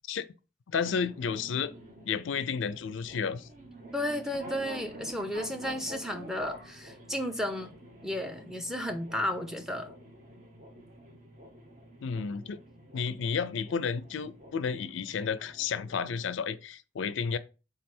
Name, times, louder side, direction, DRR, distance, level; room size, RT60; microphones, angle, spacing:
voice 1, 0.7-1.7 2.1-3.5 12.0-12.6 12.9-17.4, left 6 dB, 85° left, 0.4 m, -32 dB
sound 1, 0.8-16.3, right 1 dB, 45° right, 0.8 m, -49 dB
voice 2, 3.9-7.7 8.0-9.9, left 1 dB, 5° right, 0.5 m, -33 dB
3.9 x 3.2 x 4.3 m
head